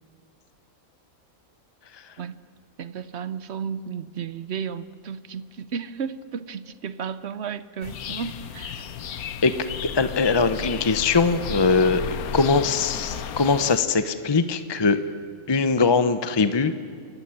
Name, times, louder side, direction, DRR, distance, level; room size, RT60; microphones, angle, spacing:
voice 1, 2.8-8.9, right 7 dB, 55° right, 15 dB, 0.9 m, -33 dB
sound 1, 7.8-13.8, left 7 dB, 90° left, 1.4 m, -34 dB
voice 2, 9.8-15.0 15.5-16.8, left 4 dB, 30° left, 11 dB, 0.5 m, -21 dB
27.5 x 14.5 x 10.0 m, 2.1 s
omnidirectional pair, 1.5 m